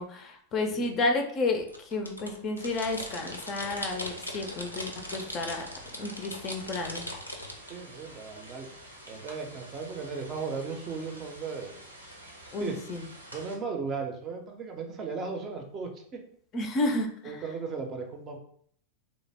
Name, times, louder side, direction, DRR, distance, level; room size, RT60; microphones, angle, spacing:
voice 1, 0.0-5.7 6.0-7.0 12.5-13.1 16.5-17.4, left 2 dB, 30° left, 5 dB, 0.4 m, -31 dB
sound 1, 1.6-7.5, left 1 dB, 85° left, 0.5 m, -39 dB
sound 2, 2.6-13.6, right 1 dB, 85° right, 0.6 m, -48 dB
voice 2, 7.7-8.7 9.1-11.7 12.0-12.2 12.4-12.8 13.3-16.2 17.2-18.4, right 5 dB, 30° right, 3 dB, 0.5 m, -36 dB
3.3 x 2.1 x 3.3 m, 0.63 s
figure-of-eight pair, 90°, 0 cm